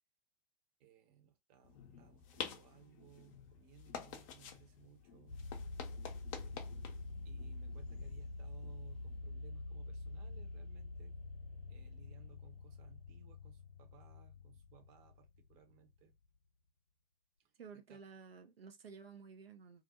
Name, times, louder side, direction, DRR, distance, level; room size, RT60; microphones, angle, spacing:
voice 1, 0.8-5.4 7.2-11.2 11.7-16.2 17.4-18.0, right 9 dB, 30° right, 0.7 m, -63 dB
sound 1, 1.6-9.2, left 7 dB, 35° left, 0.5 m, -50 dB
sound 2, 5.3-15.9, left 2 dB, 80° left, 0.5 m, -47 dB
voice 2, 17.6-19.8, right 5 dB, 75° right, 0.5 m, -53 dB
2.3 x 2.0 x 2.7 m
figure-of-eight pair, 100°, 30 cm